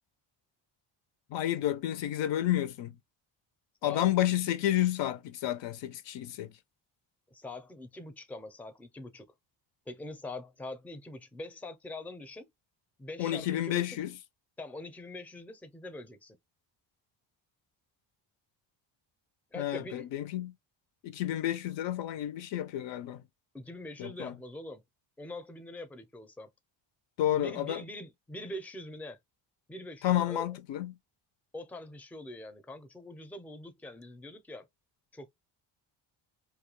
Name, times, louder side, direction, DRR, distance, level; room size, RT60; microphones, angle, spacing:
voice 1, 1.3-3.0 3.8-6.5 13.2-14.1 19.6-20.5 21.0-23.2 24.0-24.4 27.2-27.8 30.0-30.9, left 12 dB, 65° left, 0.5 m, -30 dB
voice 2, 7.3-9.3 9.9-12.5 13.0-14.0 14.6-16.4 19.5-20.1 23.5-24.8 25.2-26.5 27.4-29.2 29.7-30.5 31.5-34.7 35.1-35.3, left 1 dB, 5° left, 0.5 m, -43 dB
2.3 x 2.3 x 2.9 m
cardioid pair, 80°, 48 cm